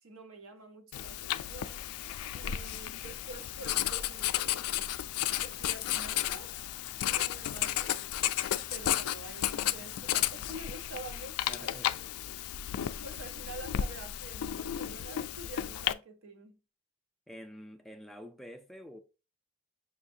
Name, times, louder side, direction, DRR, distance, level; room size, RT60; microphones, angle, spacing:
voice 1, 0.0-1.9 2.3-4.6 5.4-6.6 7.0-8.0 8.7-12.0 13.0-16.6, right 2 dB, 65° right, 0.7 m, -47 dB
Writing, 0.9-15.9, left 12 dB, 85° left, 0.3 m, -33 dB
voice 2, 11.5-11.9 17.3-19.0, equal, ahead, 0.4 m, -47 dB
6.3 x 2.6 x 2.6 m
head